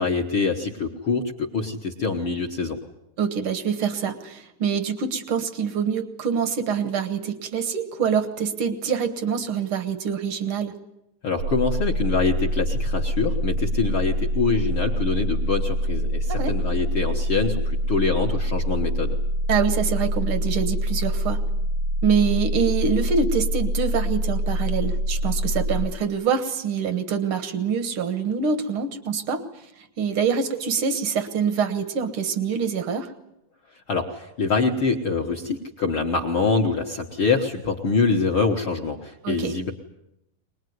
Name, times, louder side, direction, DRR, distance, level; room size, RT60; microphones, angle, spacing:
voice 1, 0.0-2.8 11.2-19.2 33.9-39.7, left 4 dB, 60° left, 1 dB, 1.3 m, -25 dB
voice 2, 3.2-10.7 16.4-16.5 19.5-21.4 22.0-29.4 29.8-33.1 39.2-39.5, right 6 dB, 70° right, 10 dB, 1.2 m, -25 dB
sound 1, 11.4-25.9, equal, 90° right, 3.2 m, -25 dB
23.5 x 20.0 x 9.4 m, 0.84 s
omnidirectional pair, 4.3 m